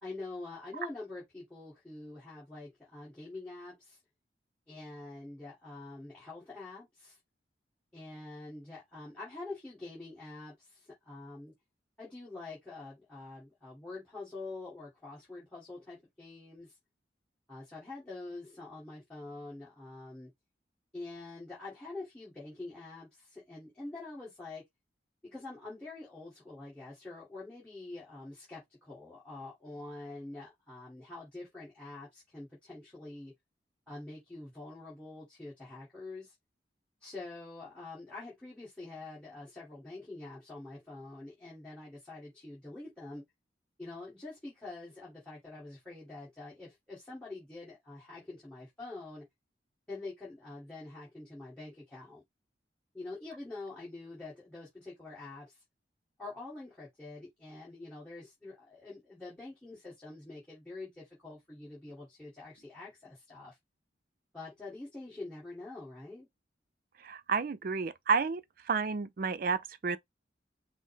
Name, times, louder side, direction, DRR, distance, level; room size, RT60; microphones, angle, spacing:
voice 1, 0.0-4.0 4.7-7.2 7.9-11.5 12.0-16.8 17.5-20.3 20.9-24.6 25.2-33.3 33.9-36.3 37.0-43.2 43.8-49.2 49.9-52.2 52.9-55.6 56.2-63.6 64.3-66.3, left 2 dB, 5° left, 1.8 m, -46 dB
voice 2, 67.0-68.4 68.7-70.0, right 5 dB, 50° right, 0.4 m, -30 dB
5.4 x 2.0 x 3.4 m
head